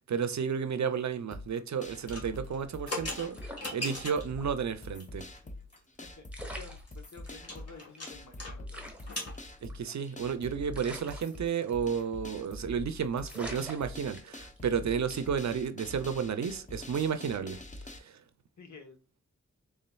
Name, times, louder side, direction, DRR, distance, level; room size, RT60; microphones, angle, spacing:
voice 1, 0.1-3.4 3.7-5.3 9.6-17.6, right 7 dB, 70° right, 0.5 m, -32 dB
sound 1, 1.3-18.0, left 1 dB, 25° left, 0.7 m, -45 dB
sound 2, 2.0-4.4 5.0-5.4 5.7-5.8 6.1-6.2 6.5-8.5 8.8-9.4, left 2 dB, 55° left, 1.7 m, -39 dB
sound 3, 3.3-4.5 4.8-4.9 5.9-6.0 6.3-7.5 7.9-8.0 8.2-8.3 8.7-10.2 10.7-12.0 12.3-12.6 12.9-13.0 13.2-14.6 15.1-15.4, right 1 dB, 5° right, 0.9 m, -46 dB
voice 2, 6.2-8.9 18.6-19.0, left 4 dB, 75° left, 1.0 m, -51 dB
4.1 x 3.6 x 2.3 m
wide cardioid pair, 75°, 29 cm